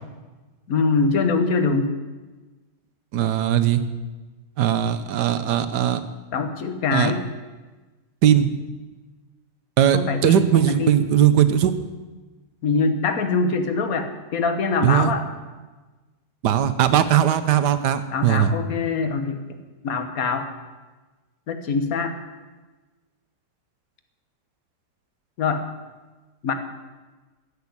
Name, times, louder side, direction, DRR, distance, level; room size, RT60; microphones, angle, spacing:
voice 1, 0.7-1.9 6.3-7.2 9.9-11.0 12.6-15.2 18.1-19.4 19.8-20.5 21.5-22.1 25.4-25.6 26.4-26.5, left 4 dB, 55° left, 8 dB, 1.6 m, -23 dB
voice 2, 3.1-3.8 4.6-6.0 6.9-7.1 8.2-8.5 9.8-11.7 14.8-15.1 16.4-18.5, right 10 dB, 70° right, 12 dB, 1.4 m, -19 dB
14.0 x 6.5 x 9.7 m, 1.2 s
omnidirectional pair, 1.9 m